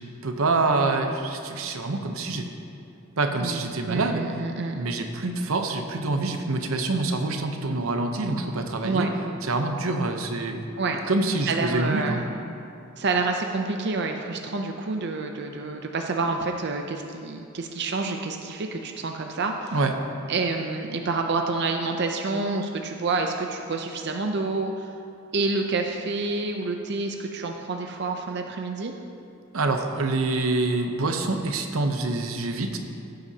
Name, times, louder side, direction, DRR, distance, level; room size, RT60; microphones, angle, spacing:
voice 1, 0.2-2.5 3.2-4.2 4.7-9.1 9.4-10.6 11.1-12.2 19.7-19.9 29.5-32.8, right 2 dB, 85° right, 5 dB, 0.8 m, -26 dB
voice 2, 3.4-4.8 8.8-9.1 10.8-11.0 11.5-12.3 13.0-19.8 20.3-24.9 25.3-28.9, right 3 dB, 55° right, 3 dB, 0.6 m, -28 dB
16.5 x 7.7 x 2.9 m, 2.6 s
head